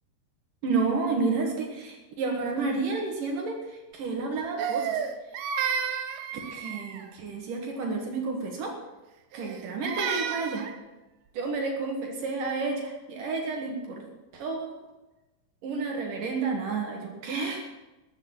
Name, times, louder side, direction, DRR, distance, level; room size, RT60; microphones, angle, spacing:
voice 1, 0.6-5.0 6.5-8.7 9.3-10.6 11.3-14.0 14.3-14.7 15.6-17.7, right 4 dB, 55° right, 2 dB, 2.7 m, -30 dB
Crying sobbing, 4.6-7.1 9.3-10.8, right 7 dB, 80° right, 2.2 m, -31 dB
13.0 x 8.3 x 8.8 m, 1.1 s
omnidirectional pair, 5.7 m